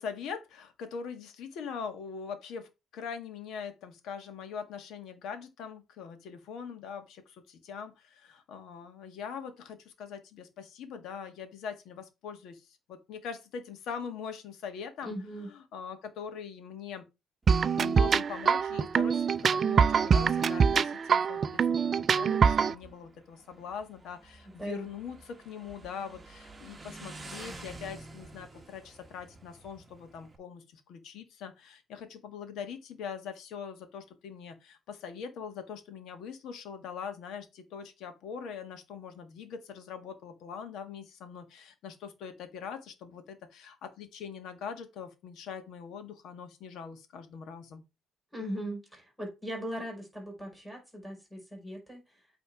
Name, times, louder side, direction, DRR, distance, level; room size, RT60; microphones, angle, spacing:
voice 1, 0.0-17.0 17.8-47.8, left 6 dB, 70° left, 1.7 m, -42 dB
voice 2, 15.0-15.5 24.6-24.9 48.3-52.0, equal, ahead, 5.1 m, -39 dB
Motorcycle, 17.4-30.4, right 2 dB, 15° right, 1.3 m, -51 dB
sound 1, 17.5-22.7, right 6 dB, 35° right, 0.4 m, -24 dB
8.6 x 3.5 x 4.8 m
cardioid pair, 140°, 0 cm